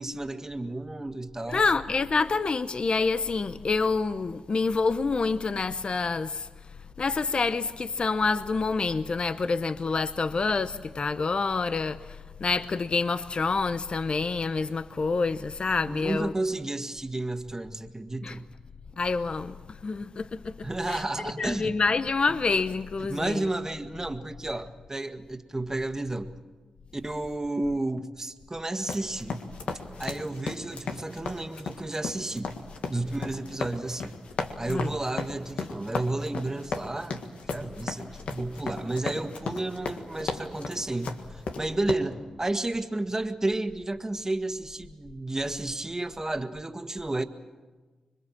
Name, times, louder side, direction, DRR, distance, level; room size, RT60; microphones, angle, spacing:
voice 1, 0.0-1.6 15.9-18.4 20.6-21.8 23.0-26.3 26.9-29.4 30.0-32.5 32.9-34.2 34.6-47.2, right 2 dB, 25° right, 1.8 m, -32 dB
voice 2, 1.5-6.5 7.0-16.3 18.2-18.4 19.0-19.6 19.8-20.5 20.9-21.0 21.4-23.5 34.7-34.9, left 4 dB, 55° left, 0.8 m, -27 dB
sound 1, 28.8-41.9, left 4 dB, 80° left, 1.7 m, -35 dB
25.5 x 22.5 x 7.4 m
supercardioid pair, 45°, 2 cm